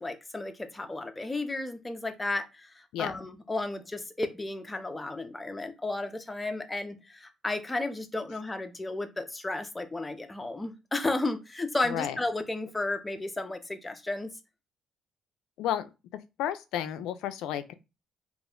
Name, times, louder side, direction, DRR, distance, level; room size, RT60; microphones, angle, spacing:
voice 1, 0.0-2.7 3.0-14.3, left 2 dB, 15° left, 0.5 m, -33 dB
voice 2, 11.8-12.2 15.6-15.9 16.4-17.7, left 10 dB, 85° left, 0.3 m, -32 dB
2.4 x 2.0 x 3.6 m
cardioid pair, 95°, 0 cm